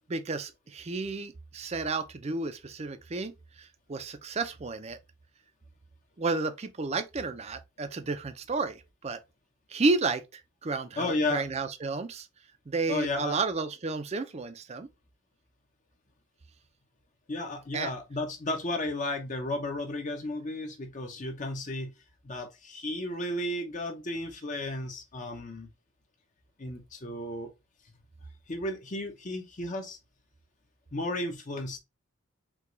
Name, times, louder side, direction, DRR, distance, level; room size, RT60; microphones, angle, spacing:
voice 1, 0.1-3.3 3.6-5.0 6.2-9.2 9.7-12.3 12.7-14.9 17.7-17.9, right 3 dB, 30° right, 0.5 m, -32 dB
voice 2, 11.0-11.5 12.9-13.4 17.3-21.9 22.2-25.7 26.6-27.5 28.5-30.0 30.9-31.8, left 2 dB, 35° left, 0.7 m, -33 dB
4.7 x 2.3 x 3.8 m
head